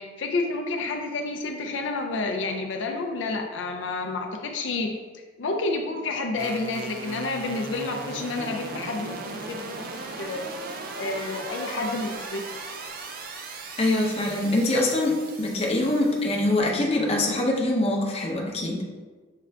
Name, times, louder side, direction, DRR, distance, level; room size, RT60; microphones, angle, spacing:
voice 1, 0.0-5.0 5.4-10.5 10.9-12.4, left 3 dB, 75° left, 3 dB, 0.5 m, -30 dB
sound 1, 6.3-16.6, right 3 dB, 50° right, 0.4 m, -38 dB
voice 2, 13.8-18.9, left 1 dB, 30° left, -1 dB, 0.6 m, -24 dB
6.5 x 2.4 x 3.3 m, 1.4 s
head